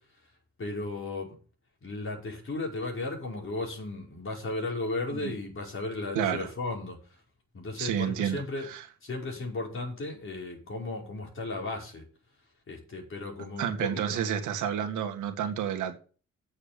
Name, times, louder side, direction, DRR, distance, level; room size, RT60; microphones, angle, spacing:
voice 1, 0.6-1.4 1.8-7.2 7.5-8.7 9.0-12.0 12.7-14.2, left 2 dB, 45° left, 5.6 m, -35 dB
voice 2, 6.1-6.5 7.8-8.9 13.6-16.0, right 9 dB, 80° right, 2.0 m, -30 dB
8.5 x 7.2 x 8.3 m
cardioid pair, 90°, 30 cm